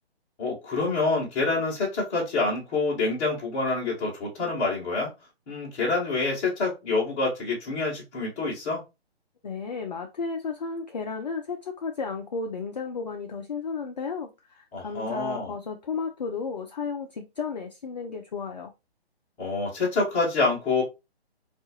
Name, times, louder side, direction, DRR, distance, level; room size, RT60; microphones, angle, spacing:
voice 1, 0.4-5.1 5.5-8.8 14.7-15.5 19.4-20.8, left 3 dB, 15° left, 0.8 m, -27 dB
voice 2, 9.4-18.7, left 5 dB, 40° left, 0.4 m, -33 dB
3.5 x 2.4 x 2.7 m
hypercardioid pair, 150°, 33 cm